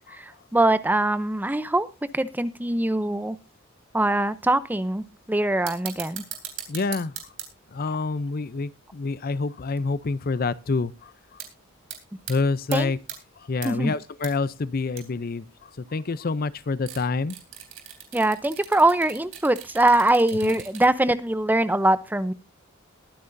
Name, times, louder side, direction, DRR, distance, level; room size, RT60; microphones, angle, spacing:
voice 1, 0.1-1.9 2.1-3.4 3.9-6.2 12.7-12.9 13.6-13.9 18.1-22.3, right 1 dB, 10° right, 0.6 m, -22 dB
sound 1, 4.6-5.0 5.4-9.9 10.3-10.4 10.7-11.0 11.4-11.5 11.8-12.3 12.7-13.2 13.6-14.3 14.6-14.7 14.9-15.2 16.8-21.0 21.3-21.4, right 10 dB, 65° right, 3.5 m, -39 dB
voice 2, 6.7-7.1 7.7-10.9 12.3-13.0 13.5-15.4 15.9-17.3, left 3 dB, 45° left, 0.5 m, -27 dB
21.5 x 9.6 x 2.6 m
head